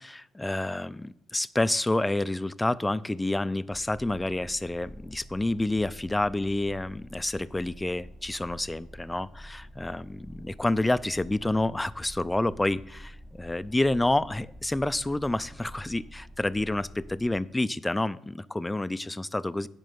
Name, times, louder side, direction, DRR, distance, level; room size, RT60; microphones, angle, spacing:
voice 1, 0.0-19.7, left 1 dB, 10° left, 16 dB, 0.4 m, -29 dB
sound 1, 3.7-17.4, equal, 10° right, 1.6 m, -47 dB
9.2 x 5.4 x 6.7 m, 0.76 s
cardioid pair, 90°, 0 cm